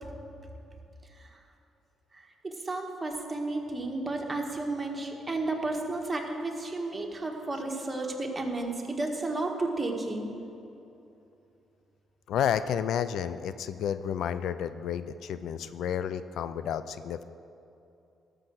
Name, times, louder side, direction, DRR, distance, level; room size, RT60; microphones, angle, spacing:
voice 1, 2.1-10.3, right 2 dB, 20° right, 1 dB, 1.6 m, -32 dB
voice 2, 12.3-17.2, left 9 dB, 75° left, 13 dB, 0.4 m, -31 dB
12.5 x 6.6 x 6.2 m, 2.7 s
cardioid pair, 80°, 0 cm